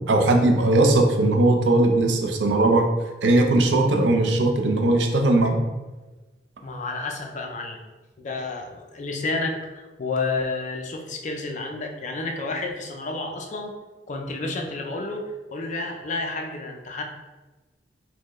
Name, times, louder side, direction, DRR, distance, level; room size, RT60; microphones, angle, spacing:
voice 1, 0.1-2.9 3.2-5.6, right 2 dB, 80° right, 3 dB, 0.5 m, -19 dB
voice 2, 6.6-7.8 8.2-13.8 14.1-17.0, left 3 dB, 45° left, 2 dB, 0.4 m, -30 dB
4.3 x 2.1 x 3.0 m, 1.2 s
head